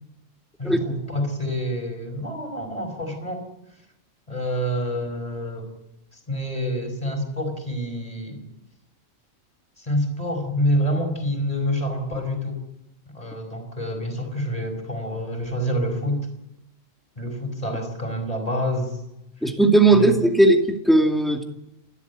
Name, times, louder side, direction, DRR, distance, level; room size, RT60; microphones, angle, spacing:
voice 1, 0.6-3.4 4.3-5.7 6.3-8.4 9.8-12.6 13.1-16.3 17.2-19.0 19.9-20.2, equal, 25° left, 5 dB, 5.0 m, -27 dB
voice 2, 19.4-21.4, right 2 dB, ahead, 3 dB, 2.3 m, -17 dB
29.0 x 12.5 x 8.3 m, 0.90 s
omnidirectional pair, 1.4 m